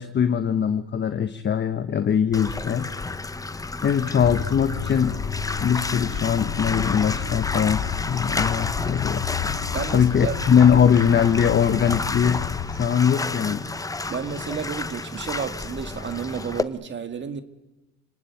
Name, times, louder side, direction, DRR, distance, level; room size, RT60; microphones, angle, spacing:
voice 1, 0.0-2.9 3.8-5.2 5.6-9.6 9.9-13.7, left 8 dB, 30° left, 1.2 m, -21 dB
Bathtub (filling or washing), 2.3-16.6, left 3 dB, 10° left, 0.8 m, -31 dB
sound 1, 4.2-12.9, left 10 dB, 75° left, 2.3 m, -32 dB
voice 2, 9.7-10.4 14.1-17.4, right 6 dB, 30° right, 1.7 m, -31 dB
28.5 x 19.0 x 9.4 m
cardioid pair, 120°, 35 cm